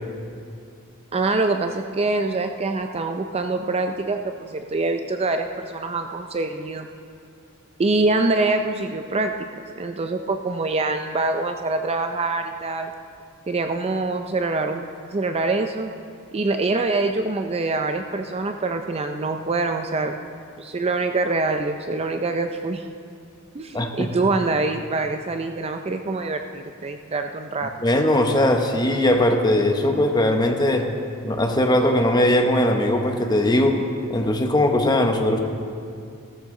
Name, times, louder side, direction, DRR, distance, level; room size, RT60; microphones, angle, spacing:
voice 1, 1.1-6.9 7.8-9.3 9.8-12.9 13.5-15.9 16.3-20.2 20.6-22.8 23.5-27.7, right 3 dB, 30° right, 6 dB, 0.4 m, -25 dB
voice 2, 23.7-24.1 27.8-30.9 31.2-33.8 34.1-35.4, left 1 dB, 20° left, 4 dB, 0.9 m, -20 dB
15.5 x 13.5 x 3.8 m, 2.4 s
head